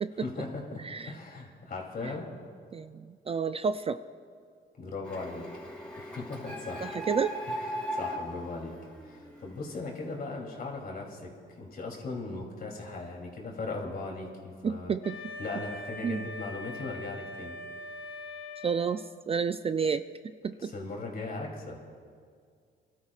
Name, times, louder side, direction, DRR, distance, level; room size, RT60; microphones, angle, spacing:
voice 1, 0.2-2.3 4.8-5.5 6.0-6.9 7.5-8.7 9.0-11.3 11.6-14.9 15.4-17.5 20.6-21.8, left 3 dB, 50° left, -1 dB, 3.1 m, -38 dB
voice 2, 2.7-4.0 6.8-7.4 14.6-15.2 16.0-16.2 18.6-20.7, right 6 dB, 30° right, 11 dB, 0.3 m, -30 dB
Printer, 5.0-9.6, equal, 5° left, 4.0 m, -38 dB
Wind instrument woodwind instrument, 15.0-19.2, left 2 dB, 80° left, 2.1 m, -42 dB
29.5 x 12.5 x 2.4 m, 2.1 s
cardioid pair, 90°, 20 cm